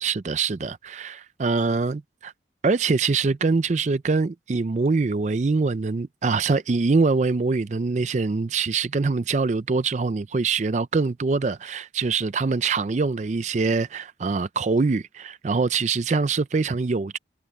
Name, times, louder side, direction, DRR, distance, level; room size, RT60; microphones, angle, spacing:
voice 1, 0.0-2.3 2.6-17.2, right 4 dB, 40° right, 0.4 m, -24 dB
head